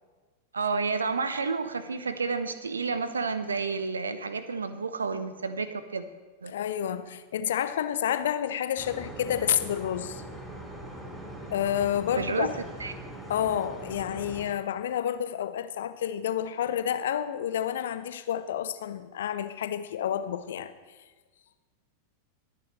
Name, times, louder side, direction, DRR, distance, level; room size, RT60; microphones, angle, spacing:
voice 1, 0.5-6.1 6.4-6.5 12.2-12.5 12.8-12.9, right 4 dB, 75° right, 0.8 m, -30 dB
voice 2, 6.5-10.2 11.5-12.5 13.3-20.7, left 10 dB, 60° left, 0.7 m, -29 dB
sound 1, 8.8-14.4, right 1 dB, 5° right, 4.2 m, -41 dB
22.0 x 9.7 x 3.2 m
figure-of-eight pair, 90°, 0 cm